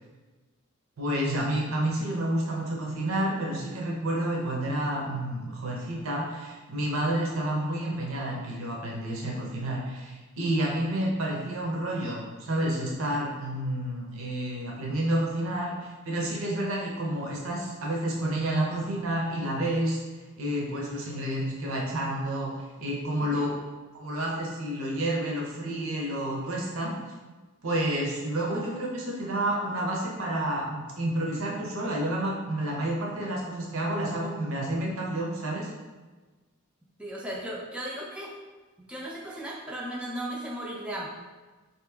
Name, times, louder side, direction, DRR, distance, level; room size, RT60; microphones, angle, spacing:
voice 1, 1.0-20.0 20.4-23.5 23.9-26.9 27.6-35.7, right 1 dB, 70° right, -2 dB, 0.8 m, -30 dB
voice 2, 37.0-38.3 38.9-41.1, right 1 dB, 5° right, -4 dB, 0.4 m, -36 dB
4.0 x 2.9 x 3.4 m, 1.3 s
head